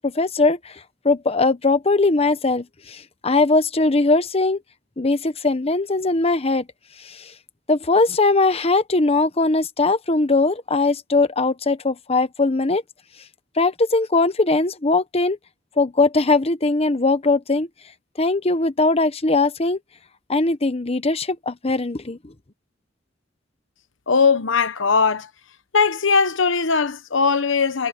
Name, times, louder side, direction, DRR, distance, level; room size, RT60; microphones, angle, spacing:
voice 1, 0.0-4.6 5.0-6.7 7.0-7.3 7.7-12.8 13.6-15.4 15.8-17.7 18.2-19.8 20.3-22.2, left 3 dB, 30° left, 1.1 m, -20 dB
voice 2, 24.1-25.3 25.7-27.9, left 5 dB, 75° left, 1.1 m, -19 dB
head